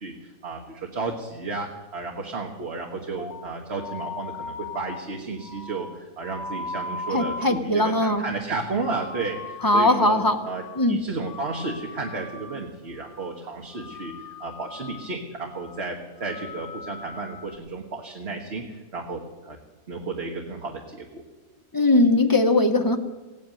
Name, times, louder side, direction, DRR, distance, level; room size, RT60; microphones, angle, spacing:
voice 1, 0.0-14.1 14.4-19.6 19.9-21.2, right 3 dB, 50° right, 1 dB, 1.6 m, -33 dB
sound 1, 3.2-10.2 10.4-10.9 11.2-12.7 12.9-13.4 13.7-15.2 15.5-15.9 16.2-17.6, left 3 dB, 85° left, 1.5 m, -39 dB
voice 2, 7.1-8.3 9.6-10.4 10.8-11.0 21.7-23.0, left 2 dB, 15° left, 5 dB, 0.9 m, -20 dB
16.5 x 9.4 x 9.0 m, 1.2 s
omnidirectional pair, 1.5 m